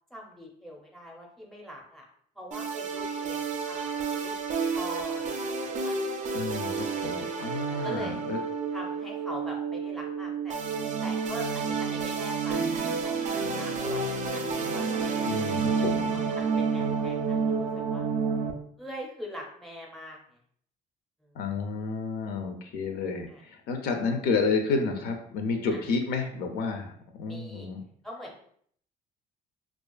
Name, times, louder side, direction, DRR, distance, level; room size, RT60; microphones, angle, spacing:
voice 1, 0.1-2.0 2.3-4.3 4.7-6.0 7.8-8.2 8.7-10.6 11.0-15.5 15.8-15.9 16.1-18.1 18.8-20.2 21.2-21.3 23.3-23.4 25.7-25.8 27.3-27.7 28.0-28.4, equal, ahead, -1 dB, 0.6 m, -43 dB
sound 1, 2.5-18.5, right 5 dB, 45° right, 0.4 m, -30 dB
voice 2, 6.3-8.4 15.3-16.2 21.4-27.8, left 4 dB, 70° left, 4 dB, 0.4 m, -30 dB
2.4 x 2.4 x 2.2 m, 0.63 s
cardioid pair, 110°, 17 cm